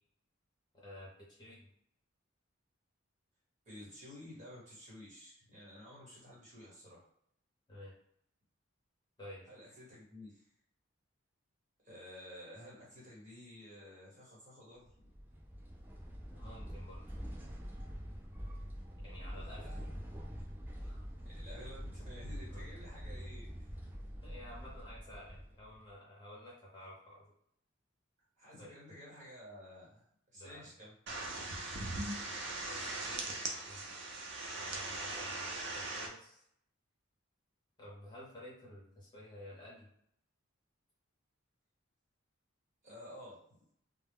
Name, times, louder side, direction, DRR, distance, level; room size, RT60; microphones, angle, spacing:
voice 1, 0.7-1.7 4.1-4.2 7.7-7.9 9.2-9.5 16.3-17.0 19.0-19.8 20.9-21.1 22.5-22.7 23.7-23.9 24.2-27.2 28.6-28.7 30.3-30.7 31.6-31.7 32.6-34.1 34.5-36.4 37.8-39.9, left 1 dB, 20° left, -6 dB, 0.9 m, -52 dB
voice 2, 3.6-7.1 9.5-10.4 11.8-15.1 19.4-19.8 21.2-23.5 28.4-30.0 30.3-30.9 42.8-43.4, left 1 dB, 40° right, -6 dB, 1.3 m, -52 dB
sound 1, 14.9-25.9, equal, 10° right, 0.4 m, -45 dB
sound 2, 31.1-36.1, right 2 dB, 60° right, 0.5 m, -40 dB
2.2 x 2.0 x 3.5 m, 0.70 s
head